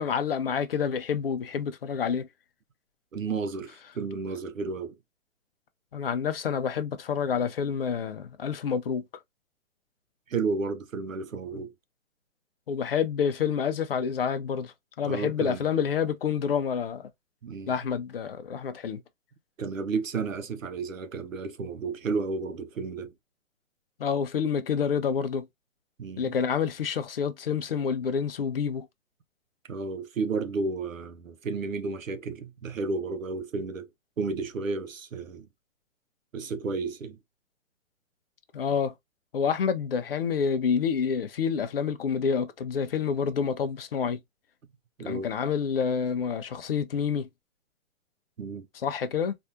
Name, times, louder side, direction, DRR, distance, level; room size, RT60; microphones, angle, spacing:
voice 1, 0.0-2.3 5.9-9.0 12.7-17.1 17.7-19.0 24.0-25.5 26.2-28.9 38.5-38.9 39.3-44.2 45.0-47.3 48.8-49.3, left 7 dB, 45° left, 0.6 m, -28 dB
voice 2, 3.1-4.9 10.3-11.7 15.0-15.6 17.4-17.8 19.6-23.1 26.0-26.3 29.7-33.9 34.2-35.5 36.3-37.2 45.0-45.3 48.4-48.7, right 4 dB, 70° right, 0.8 m, -32 dB
4.1 x 2.5 x 2.6 m
figure-of-eight pair, 130°, 41 cm